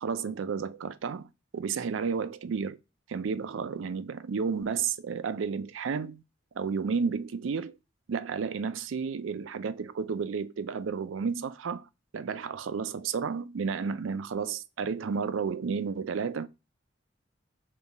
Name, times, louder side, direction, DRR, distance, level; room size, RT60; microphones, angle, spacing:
voice 1, 0.0-2.8 3.1-6.2 6.6-7.8 8.1-11.8 12.1-16.5, right 5 dB, 80° right, 0.4 m, -32 dB
5.5 x 2.4 x 4.0 m
head